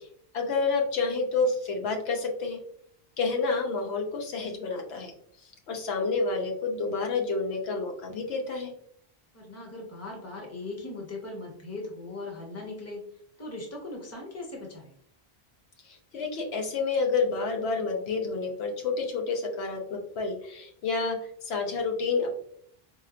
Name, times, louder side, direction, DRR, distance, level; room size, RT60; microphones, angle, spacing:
voice 1, 0.3-2.6 3.2-5.1 5.7-8.7 15.9-21.2 21.4-22.3, left 4 dB, 80° left, 2 dB, 1.0 m, -29 dB
voice 2, 9.3-13.0 13.4-14.9, left 2 dB, 15° left, -1 dB, 0.8 m, -39 dB
4.3 x 2.9 x 2.4 m, 0.65 s
omnidirectional pair, 1.1 m